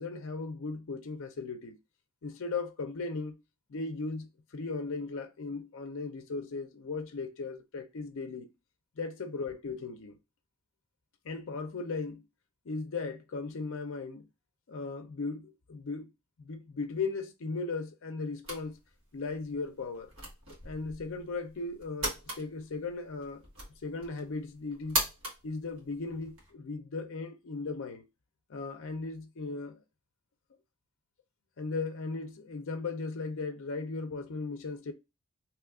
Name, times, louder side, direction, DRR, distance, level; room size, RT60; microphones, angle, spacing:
voice 1, 0.0-1.8 2.2-3.4 3.7-8.5 9.0-10.2 11.3-12.2 12.7-14.3 14.7-16.1 16.4-18.8 19.1-20.1 20.6-23.4 23.8-25.0 25.4-28.0 28.5-29.8 31.6-34.9, left 3 dB, 60° left, 0.5 m, -37 dB
sound 1, 18.4-26.5, right 2 dB, 60° right, 1.4 m, -40 dB
3.0 x 2.3 x 3.5 m
head